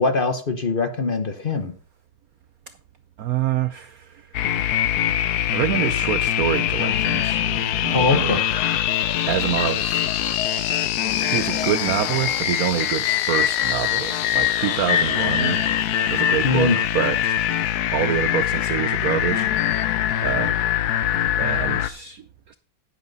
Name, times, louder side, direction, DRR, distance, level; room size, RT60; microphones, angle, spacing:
voice 1, 0.0-1.7 7.9-8.4 16.4-16.8, left 3 dB, 50° left, 8 dB, 0.6 m, -22 dB
voice 2, 3.2-4.4 5.5-8.6 9.2-10.0 11.2-15.7 16.1-17.4 17.9-20.6 21.3-22.5, right 10 dB, 90° right, 12 dB, 0.7 m, -27 dB
sound 1, 4.3-21.9, left 11 dB, 70° left, 0.9 m, -23 dB
sound 2, 8.1-21.3, left 10 dB, 90° left, 1.6 m, -38 dB
10.5 x 9.9 x 4.0 m, 0.41 s
omnidirectional pair, 2.3 m